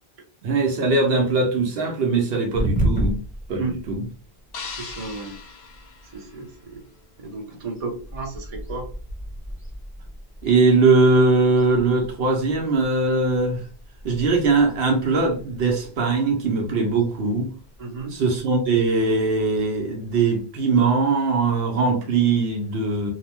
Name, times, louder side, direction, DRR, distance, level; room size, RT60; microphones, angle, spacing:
voice 1, 0.4-3.2 3.5-4.0 10.4-13.7 14.0-17.5 18.1-23.1, right 3 dB, 70° right, 0.8 m, -21 dB
sound 1, 2.5-20.4, right 1 dB, 10° left, 0.7 m, -35 dB
sound 2, 4.5-6.8, left 5 dB, 70° left, 0.9 m, -39 dB
voice 2, 4.6-5.4 6.1-6.8 7.2-8.9 17.8-18.1, right 3 dB, 40° right, 0.8 m, -33 dB
2.7 x 2.0 x 2.9 m
omnidirectional pair, 1.0 m